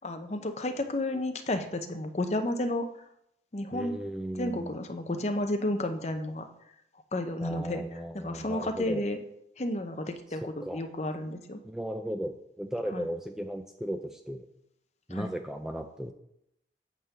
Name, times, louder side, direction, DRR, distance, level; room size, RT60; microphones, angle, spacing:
voice 1, 0.0-2.9 3.5-3.9 4.3-6.5 7.1-9.2 9.6-11.6 12.9-13.1 15.1-15.3, left 1 dB, 35° left, 7 dB, 0.7 m, -32 dB
voice 2, 3.7-4.7 7.4-9.1 10.6-10.8 11.6-14.5 15.1-16.1, equal, ahead, 5 dB, 0.3 m, -36 dB
8.4 x 3.7 x 6.7 m, 0.76 s
head